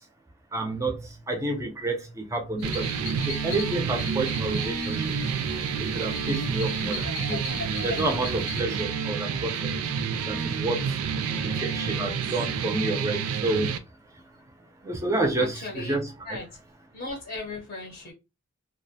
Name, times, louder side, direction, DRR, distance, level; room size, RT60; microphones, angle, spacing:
voice 1, 0.5-2.9 3.3-5.0 5.9-7.4 7.8-9.6 10.3-10.8 11.6-13.7 14.8-16.1, right 2 dB, 15° right, 0.4 m, -29 dB
sound 1, 2.6-8.6, left 4 dB, 80° left, 0.8 m, -38 dB
sound 2, 2.6-13.8, right 6 dB, 90° right, 0.3 m, -29 dB
voice 2, 9.0-9.5 11.2-12.3 15.4-15.9 16.2-16.5 16.9-18.1, left 2 dB, 45° left, 0.6 m, -39 dB
2.4 x 2.0 x 2.6 m
head